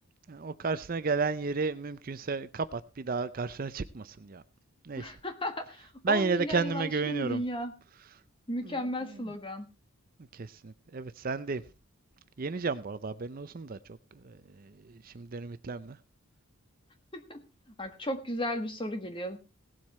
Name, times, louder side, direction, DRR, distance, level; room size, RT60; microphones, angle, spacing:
voice 1, 0.3-4.4 4.8-5.2 6.0-7.4 8.6-8.8 10.3-11.6 12.4-13.8 14.2-16.0, right 4 dB, 40° right, 0.5 m, -33 dB
voice 2, 5.0-7.7 8.5-9.6 17.1-17.4 17.8-19.4, left 1 dB, 20° left, 1.5 m, -35 dB
17.5 x 7.6 x 4.3 m
head